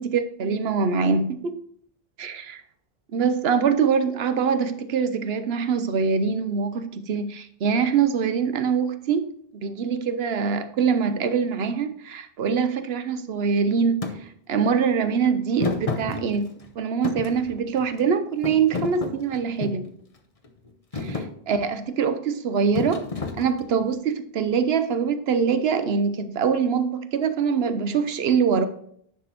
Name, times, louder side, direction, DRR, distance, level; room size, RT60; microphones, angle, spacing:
voice 1, 0.0-1.6 2.2-2.6 3.1-14.1 14.5-19.9 20.9-21.2 21.5-23.0 23.4-28.7, right 6 dB, 75° right, 11 dB, 1.0 m, -24 dB
Thump thud, 14.0-14.2 15.6-16.7 17.0-18.0 18.4-19.9 20.4-20.7 20.9-21.3 22.7-23.8, left 3 dB, 35° left, 0.9 m, -30 dB
10.0 x 6.1 x 3.0 m, 0.66 s
omnidirectional pair, 1.0 m